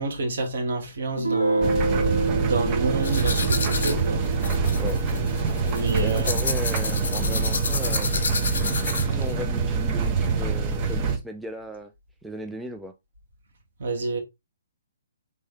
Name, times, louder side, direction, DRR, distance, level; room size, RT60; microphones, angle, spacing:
voice 1, 0.0-1.8 2.4-4.3 5.6-6.3 13.8-14.2, right 3 dB, 55° right, 1.5 m, -28 dB
Guitar, 1.2-6.7, right 3 dB, 85° right, 0.9 m, -29 dB
sound 1, 1.6-11.2, right 4 dB, 25° right, 0.7 m, -25 dB
sound 2, 3.0-9.3, left 4 dB, 55° left, 1.0 m, -30 dB
voice 2, 6.0-8.1 8.8-11.9 12.2-12.9, equal, 5° right, 0.3 m, -36 dB
4.3 x 3.3 x 3.3 m
figure-of-eight pair, 125°, 0 cm